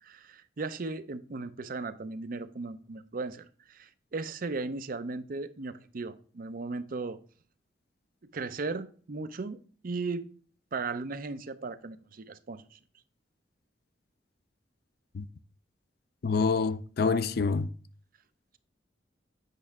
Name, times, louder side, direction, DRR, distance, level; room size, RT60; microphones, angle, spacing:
voice 1, 0.0-7.2 8.3-10.3 10.7-12.8, right 3 dB, 50° right, 0.6 m, -37 dB
voice 2, 16.2-17.7, left 4 dB, 60° left, 0.4 m, -27 dB
8.3 x 5.5 x 3.5 m
head